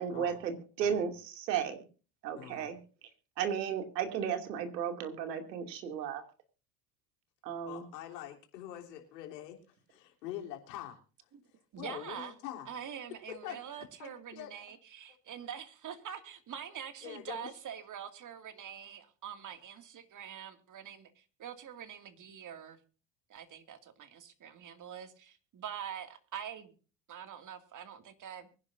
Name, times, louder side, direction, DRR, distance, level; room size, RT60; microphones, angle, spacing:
voice 1, 0.0-1.8 2.2-2.8 3.4-6.2 7.4-7.8, right 8 dB, 85° right, 6 dB, 2.8 m, -34 dB
voice 2, 2.4-2.7 7.7-9.6 9.9-11.0 11.8-12.7 13.4-13.6 14.0-14.5 17.0-17.5, left 12 dB, 80° left, 2 dB, 3.6 m, -44 dB
voice 3, 11.7-12.3 12.7-22.8 23.3-26.7 27.1-28.5, right 8 dB, 40° right, 8 dB, 2.4 m, -45 dB
24.0 x 11.0 x 2.7 m, 0.35 s
hypercardioid pair, 85°, 49 cm